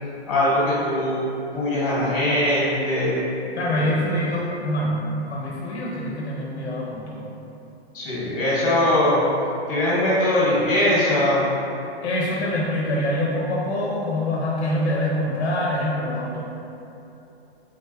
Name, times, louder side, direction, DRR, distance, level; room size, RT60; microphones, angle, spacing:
voice 1, 0.3-1.2 1.5-3.2 3.6-4.0 7.9-9.2 9.7-11.4, left 1 dB, 30° left, -8 dB, 1.5 m, -21 dB
voice 2, 3.5-7.3 12.0-16.4, left 1 dB, 75° left, -4 dB, 0.8 m, -25 dB
4.7 x 3.9 x 2.3 m, 2.9 s
hypercardioid pair, 175°, 33 cm